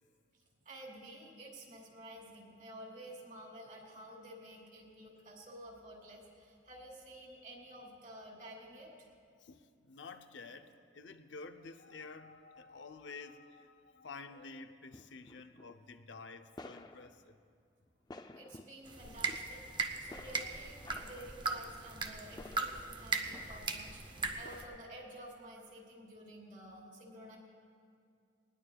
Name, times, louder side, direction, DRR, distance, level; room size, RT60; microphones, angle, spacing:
voice 1, 0.6-9.1 18.3-19.6 20.0-24.0 24.4-27.4, right 1 dB, 45° right, -1 dB, 2.8 m, -51 dB
voice 2, 9.4-17.3 24.1-24.2, left 4 dB, 75° left, 7 dB, 0.6 m, -50 dB
sound 1, 14.9-15.8 16.5-17.2 17.9-18.9 19.2-19.4 20.1-21.4 22.3-23.8 24.4-25.2, left 2 dB, 20° left, 0.4 m, -53 dB
sound 2, 18.9-24.6, right 4 dB, 25° right, 0.6 m, -39 dB
20.0 x 19.0 x 2.3 m, 2.3 s
head